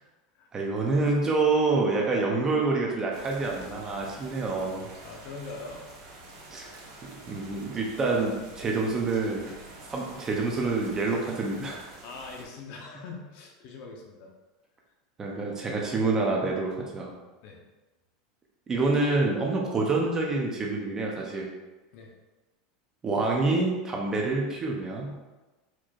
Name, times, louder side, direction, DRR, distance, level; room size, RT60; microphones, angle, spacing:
voice 1, 0.5-4.9 6.5-6.7 7.0-9.5 9.9-11.9 15.2-17.1 18.7-21.5 23.0-25.2, right 3 dB, 20° right, -1 dB, 0.6 m, -27 dB
sound 1, 3.1-12.4, right 2 dB, 60° right, 1.3 m, -47 dB
voice 2, 5.0-5.8 12.0-14.3 17.4-17.6 21.9-22.1, left 3 dB, 50° left, 0 dB, 0.8 m, -42 dB
4.5 x 4.4 x 2.4 m, 1.1 s
supercardioid pair, 155°, 3 cm